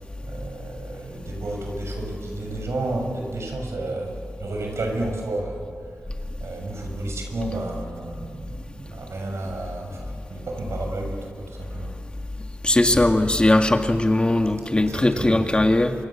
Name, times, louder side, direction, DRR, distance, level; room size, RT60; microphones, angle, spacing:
voice 1, 0.2-5.7 6.4-11.9 14.8-15.4, right 2 dB, 85° right, 2 dB, 6.6 m, -32 dB
voice 2, 12.6-15.9, left 1 dB, 25° left, 5 dB, 1.9 m, -19 dB
28.5 x 26.0 x 7.4 m, 2.3 s
wide cardioid pair, 80°, 5 cm